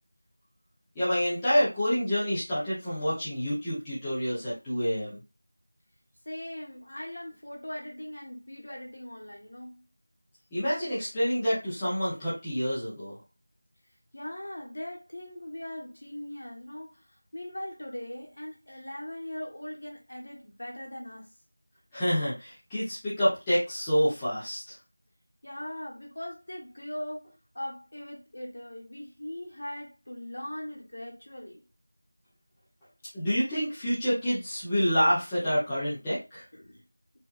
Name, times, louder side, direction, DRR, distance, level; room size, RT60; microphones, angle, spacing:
voice 1, 0.9-5.2 10.5-13.2 21.9-24.7 33.1-36.4, equal, 5° left, 0.7 m, -28 dB
voice 2, 6.2-9.8 14.1-21.3 25.4-31.6 36.5-36.8, left 1 dB, 50° left, 1.3 m, -40 dB
4.5 x 2.7 x 2.5 m
figure-of-eight pair, 180°, 0 cm